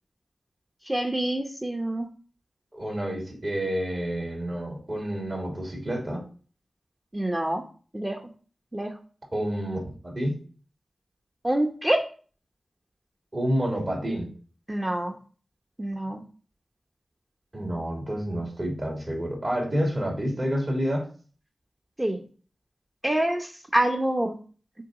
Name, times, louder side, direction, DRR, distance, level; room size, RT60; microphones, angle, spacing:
voice 1, 0.9-2.1 7.1-7.6 7.9-8.2 8.7-8.9 11.4-12.0 14.7-15.1 15.8-16.2 22.0-22.2 23.0-24.3, right 1 dB, 20° right, 2 dB, 0.9 m, -26 dB
voice 2, 2.7-6.2 9.3-10.4 13.3-14.3 17.5-21.1, equal, 45° right, -1 dB, 2.9 m, -29 dB
6.7 x 4.0 x 3.9 m, 0.41 s
cardioid pair, 50°, 0 cm